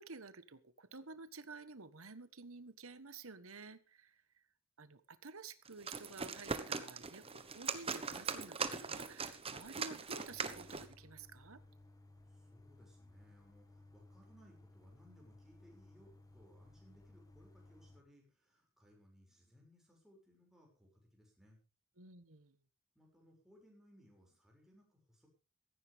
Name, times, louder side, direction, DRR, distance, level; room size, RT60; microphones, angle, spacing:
voice 1, 0.0-4.4 4.8-11.6 22.0-22.6, right 4 dB, 70° right, 14 dB, 1.4 m, -52 dB
sound 1, 5.6-10.9, right 5 dB, 25° right, 1.2 m, -41 dB
sound 2, 10.3-18.0, left 2 dB, 15° left, 1.9 m, -60 dB
voice 2, 12.3-21.6 22.9-25.3, equal, ahead, -1 dB, 6.3 m, -65 dB
16.5 x 15.0 x 3.6 m, 0.34 s
head